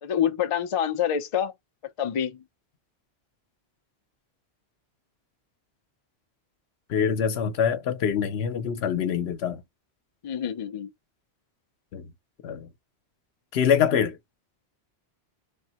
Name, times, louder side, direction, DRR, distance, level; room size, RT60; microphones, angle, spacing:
voice 1, 0.0-1.5 2.0-2.4 10.2-10.9, left 9 dB, 50° left, 0.4 m, -27 dB
voice 2, 6.9-9.6 11.9-12.1 12.4-12.7 13.5-14.2, left 7 dB, 75° left, 0.9 m, -25 dB
3.4 x 2.1 x 2.8 m
omnidirectional pair, 1.1 m